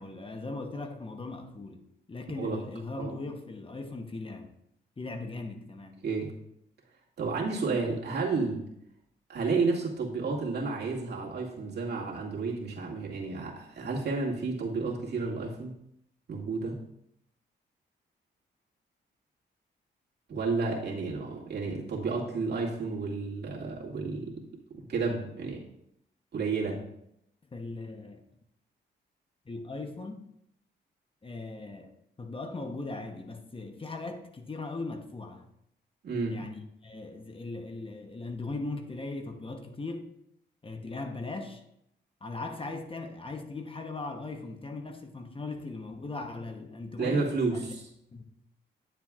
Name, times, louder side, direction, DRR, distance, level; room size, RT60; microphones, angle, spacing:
voice 1, 0.0-4.6 5.0-6.0 27.5-28.2 29.5-30.2 31.2-35.5 36.3-40.1 40.6-41.6 42.2-47.7 48.1-48.3, left 3 dB, 30° left, 5 dB, 0.9 m, -39 dB
voice 2, 7.2-8.6 9.3-15.7 16.3-16.8 20.3-24.4 24.7-25.6 26.3-26.8 36.0-36.4 47.0-47.8, right 4 dB, 60° right, -3 dB, 2.2 m, -31 dB
9.7 x 7.2 x 2.4 m, 0.76 s
cardioid pair, 75°, 19 cm